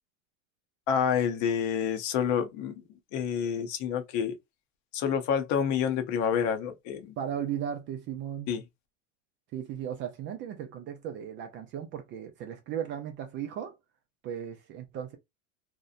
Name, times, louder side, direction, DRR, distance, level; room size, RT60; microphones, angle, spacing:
voice 1, 0.9-2.8 3.1-4.4 4.9-7.1 8.5-8.6, left 7 dB, 50° left, 0.7 m, -28 dB
voice 2, 7.2-8.5 9.5-13.8 14.2-15.2, right 9 dB, 30° right, 0.4 m, -36 dB
2.8 x 2.0 x 2.4 m
supercardioid pair, 125°, 38 cm